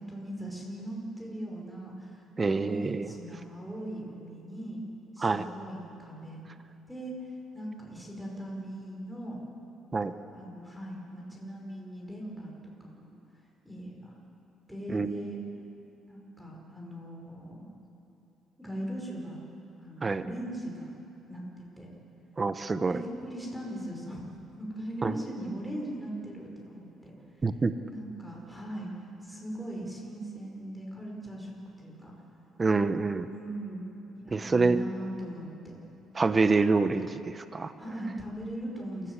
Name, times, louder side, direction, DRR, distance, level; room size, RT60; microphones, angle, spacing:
voice 1, 0.0-4.8 5.1-6.4 6.9-9.4 10.3-12.5 12.8-13.1 13.6-14.1 14.7-15.4 16.1-17.7 18.6-19.4 19.8-20.9 21.3-21.9 22.8-27.1 27.9-28.9 29.2-32.3 33.3-33.9 34.2-35.7 37.8-39.1, right 1 dB, 5° right, -2 dB, 5.3 m, -39 dB
voice 2, 2.4-3.1 5.2-5.4 9.9-10.1 14.9-15.2 20.0-20.2 22.4-23.0 25.0-25.1 27.4-27.7 32.6-33.3 34.3-34.8 36.1-37.7, right 4 dB, 25° right, 11 dB, 0.9 m, -26 dB
27.5 x 16.0 x 8.2 m, 2.9 s
cardioid pair, 135°, 0 cm